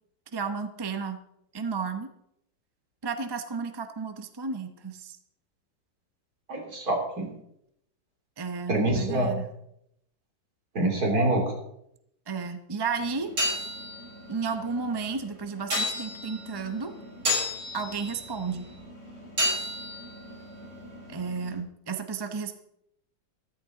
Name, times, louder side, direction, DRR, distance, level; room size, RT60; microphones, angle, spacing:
voice 1, 0.3-1.2 1.5-2.1 3.0-5.2 8.4-9.5 12.3-13.3 14.3-16.9 17.7-18.7 21.1-22.5, right 5 dB, 20° right, 8 dB, 0.6 m, -33 dB
voice 2, 6.5-7.3 8.7-9.3 10.7-11.5, right 1 dB, 65° right, 1 dB, 3.5 m, -25 dB
sound 1, 13.0-21.6, left 1 dB, 90° right, 6.7 m, -33 dB
15.0 x 13.5 x 3.9 m, 0.75 s
omnidirectional pair, 1.8 m